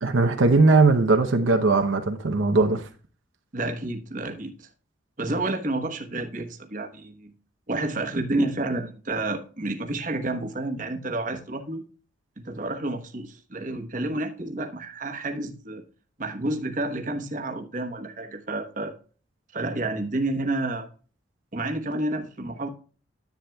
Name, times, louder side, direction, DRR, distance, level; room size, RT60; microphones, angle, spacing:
voice 1, 0.0-2.8, right 3 dB, 85° right, 0.8 m, -19 dB
voice 2, 3.5-4.7 5.2-7.3 7.7-11.8 12.4-15.8 16.2-18.9 19.5-20.9 21.5-22.7, right 2 dB, 40° right, 1.1 m, -30 dB
10.5 x 8.4 x 2.3 m
head